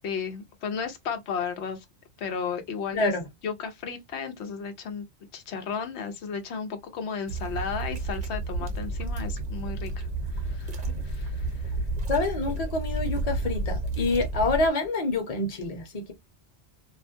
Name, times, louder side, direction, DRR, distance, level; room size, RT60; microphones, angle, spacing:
voice 1, 0.0-1.8 2.2-3.1 3.4-5.0 5.3-11.8, left 6 dB, 90° left, 0.9 m, -34 dB
voice 2, 2.9-3.2 12.1-16.1, left 2 dB, 40° left, 0.8 m, -27 dB
sound 1, 7.3-14.7, right 2 dB, 50° right, 0.8 m, -31 dB
2.5 x 2.1 x 2.6 m
omnidirectional pair, 1.1 m